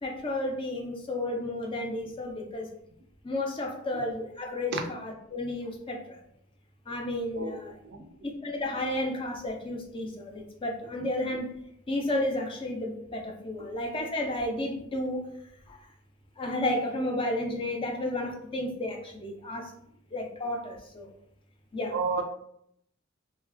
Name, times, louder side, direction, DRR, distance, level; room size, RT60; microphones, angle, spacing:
voice 1, 0.0-2.7 3.2-6.2 6.9-7.8 8.2-11.5 11.9-15.2 15.7-15.8 16.4-19.7 20.1-21.1 21.7-22.0, left 1 dB, 25° left, 2 dB, 0.4 m, -32 dB
voice 2, 21.9-22.2, right 4 dB, 55° right, 5 dB, 0.4 m, -30 dB
3.0 x 2.4 x 2.4 m, 0.72 s
head